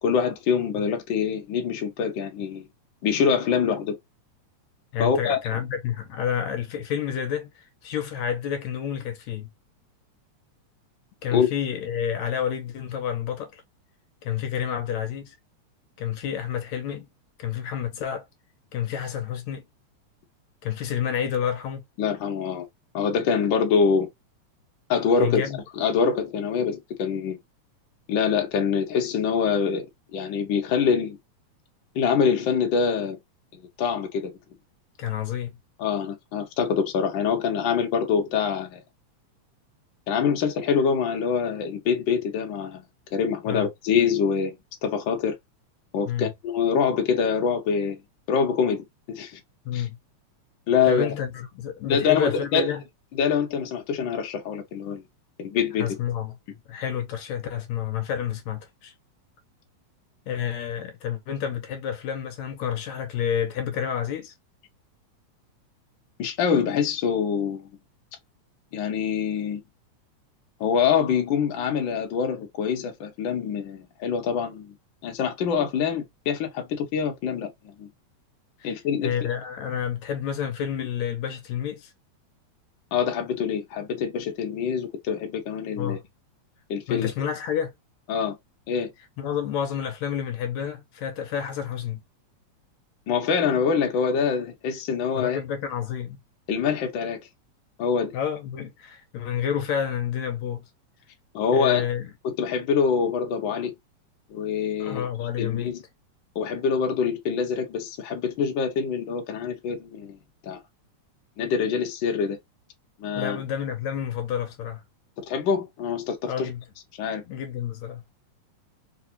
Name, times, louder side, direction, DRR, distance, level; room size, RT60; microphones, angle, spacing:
voice 1, 0.0-2.7 3.0-4.0 5.0-5.4 11.3-11.5 22.0-22.7 22.9-24.1 24.9-25.4 25.8-27.4 28.1-29.9 30.1-31.2 31.9-33.2 33.8-34.3 35.8-38.8 40.1-42.8 43.1-44.6 44.8-45.3 45.9-48.0 48.3-49.4 49.7-49.8 50.7-51.1 51.8-52.7 53.1-55.0 55.4-55.9 66.2-67.7 68.7-69.6 70.6-74.7 75.0-77.9 78.6-79.1 82.9-86.0 86.7-87.1 88.1-88.4 88.7-88.9 93.1-95.4 96.5-97.2 97.8-98.1 101.3-101.8 102.2-103.7 104.3-105.1 105.4-105.8 106.3-110.2 110.4-110.6 111.4-112.4 113.0-113.4 115.2-116.5 117.0-117.2, left 6 dB, 55° left, 1.4 m, -25 dB
voice 2, 4.9-9.5 11.2-13.6 14.2-15.4 16.0-17.1 17.4-18.3 18.7-19.6 20.6-21.8 25.2-25.6 35.0-35.6 43.5-43.7 46.1-46.3 49.7-50.0 50.8-52.8 55.8-56.4 56.7-58.9 60.3-64.3 78.6-78.8 79.0-81.9 85.8-86.0 86.9-87.7 89.2-92.0 95.2-96.2 98.1-100.6 101.5-102.1 104.8-105.8 113.2-114.8 116.3-116.6 117.3-118.0, left 9 dB, 75° left, 2.1 m, -29 dB
4.7 x 2.4 x 2.8 m
omnidirectional pair, 3.4 m